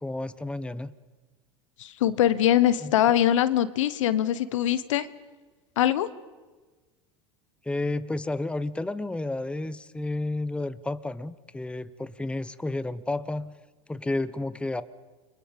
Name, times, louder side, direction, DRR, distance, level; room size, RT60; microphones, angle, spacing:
voice 1, 0.0-0.9 2.8-2.9 7.6-13.5 13.9-14.8, left 2 dB, 5° left, 15 dB, 1.0 m, -31 dB
voice 2, 1.8-5.1 5.8-6.1, left 11 dB, 80° left, 15 dB, 1.2 m, -22 dB
29.5 x 24.0 x 5.4 m, 1.3 s
hypercardioid pair, 95°, 16 cm